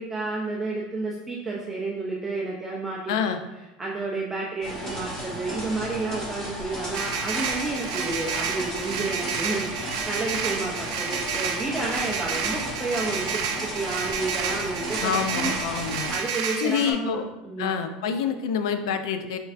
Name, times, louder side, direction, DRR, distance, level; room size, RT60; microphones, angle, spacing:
voice 1, 0.0-3.3 3.8-13.3 13.6-17.7, right 3 dB, 10° right, -4 dB, 0.4 m, -31 dB
voice 2, 3.1-3.4 15.0-16.1 16.6-17.3 17.6-19.4, left 7 dB, 85° left, 9 dB, 0.4 m, -27 dB
sound 1, 4.6-16.1, equal, 15° left, 1.5 m, -35 dB
sound 2, 6.9-16.9, right 6 dB, 80° right, 0.4 m, -30 dB
4.3 x 3.2 x 2.4 m, 1.0 s
supercardioid pair, 140°, 3 cm